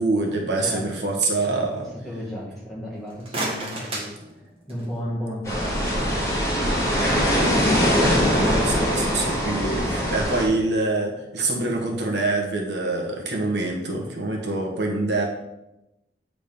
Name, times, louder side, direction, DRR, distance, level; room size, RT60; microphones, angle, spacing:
voice 1, 0.0-1.9 8.3-15.2, right 2 dB, 85° right, 0 dB, 1.4 m, -25 dB
voice 2, 0.6-1.1 1.4-4.1 4.7-6.5, equal, ahead, -6 dB, 2.0 m, -34 dB
sound 1, 2.9-5.0, right 1 dB, 30° right, 1.6 m, -33 dB
sound 2, 5.4-10.5, equal, 20° left, 1.9 m, -22 dB
8.7 x 3.9 x 5.2 m, 0.92 s
head